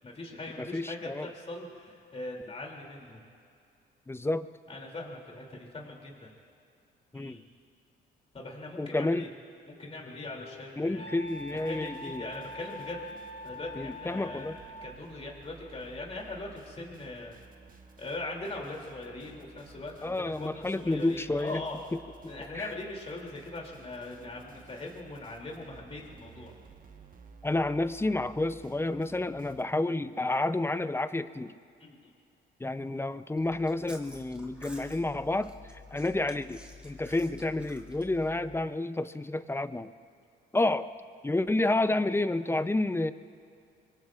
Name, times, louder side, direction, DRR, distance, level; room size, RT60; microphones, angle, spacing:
voice 1, 0.0-3.2 4.7-6.3 7.1-7.4 8.3-9.3 9.7-11.1 11.5-13.0 13.4-14.5 14.8-17.3 18.0-21.8 22.3-26.5 31.8-32.0, left 2 dB, 30° left, -1 dB, 2.8 m, -41 dB
voice 2, 0.6-1.3 4.1-4.5 7.1-7.4 8.8-9.3 10.8-12.3 13.7-14.6 20.0-21.6 22.2-22.7 27.4-31.5 32.6-35.5 35.9-39.9 40.5-40.9 41.2-43.1, left 2 dB, 10° left, 12 dB, 0.5 m, -30 dB
Wind instrument woodwind instrument, 9.6-15.0, left 2 dB, 70° left, 2.2 m, -45 dB
sound 1, 11.2-29.6, right 4 dB, 45° right, 1.2 m, -54 dB
Chewing mastication, 33.4-38.7, left 2 dB, 5° right, 2.3 m, -50 dB
25.5 x 23.0 x 2.5 m, 2.4 s
cardioid pair, 90°, 20 cm